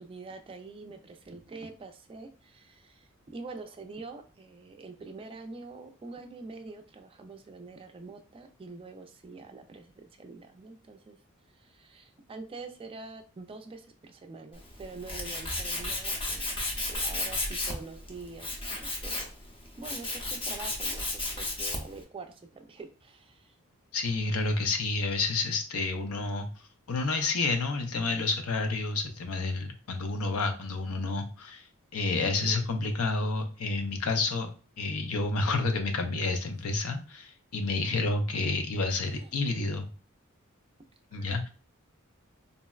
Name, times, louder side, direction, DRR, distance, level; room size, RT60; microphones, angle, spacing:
voice 1, 0.0-11.2 11.5-19.3 19.8-23.6 32.2-32.6 37.9-38.0 39.1-39.3 41.1-41.3, right 3 dB, 25° right, 6 dB, 0.3 m, -45 dB
Tools, 14.5-22.0, left 2 dB, 25° left, 0.6 m, -34 dB
voice 2, 23.9-26.5 26.9-31.6 31.9-34.5 34.8-39.9 41.1-41.5, left 3 dB, 90° left, 6 dB, 0.5 m, -29 dB
3.8 x 2.1 x 2.3 m, 0.36 s
head